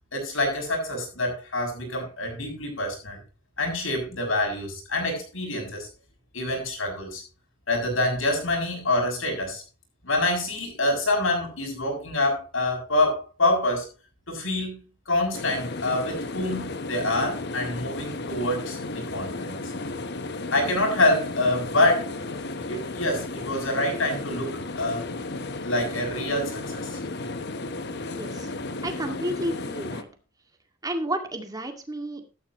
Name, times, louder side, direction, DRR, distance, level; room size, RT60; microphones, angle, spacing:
voice 1, 0.1-3.2 3.6-5.9 6.3-7.2 7.7-9.6 10.0-13.9 14.3-14.8 15.1-19.6 20.5-22.4 22.7-25.1 25.6-27.0, left 2 dB, 85° left, 6.9 m, -26 dB
sound 1, 15.3-30.0, left 2 dB, 55° left, 1.1 m, -34 dB
voice 2, 28.1-28.5 28.8-30.1 30.8-32.3, right 1 dB, 20° right, 2.1 m, -31 dB
13.0 x 13.0 x 3.0 m
head